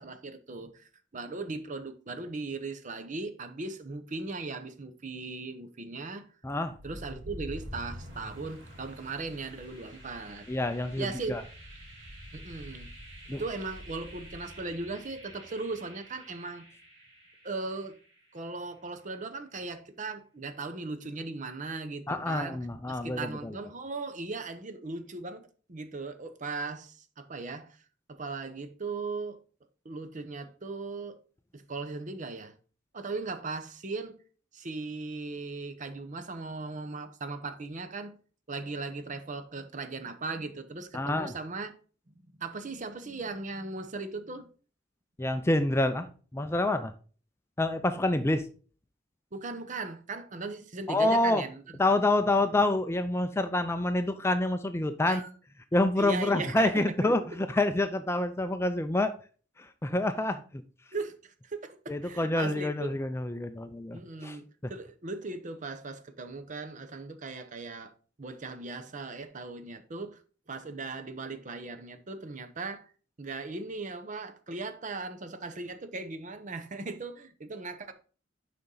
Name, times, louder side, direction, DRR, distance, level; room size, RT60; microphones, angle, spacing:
voice 1, 0.0-6.2 6.8-10.5 11.0-11.4 12.3-12.9 13.3-16.7 17.4-18.0 18.3-27.8 28.1-29.4 29.8-31.2 31.5-32.5 32.9-34.2 34.5-38.2 38.5-41.7 42.4-44.5 49.3-51.6 55.0-55.3 56.0-57.2 60.9-63.0 63.9-70.2 70.5-72.9 73.2-77.9, right 3 dB, 40° right, 0.8 m, -38 dB
voice 2, 6.4-6.7 10.5-11.4 13.3-13.4 22.1-23.5 40.9-41.3 45.2-46.1 46.3-46.9 47.6-48.5 50.9-51.4 51.8-55.2 55.7-59.1 59.6-60.4 61.9-64.4, left 2 dB, 15° left, 0.4 m, -27 dB
sound 1, 6.7-18.5, equal, 60° right, 3.1 m, -47 dB
6.9 x 5.2 x 3.8 m
head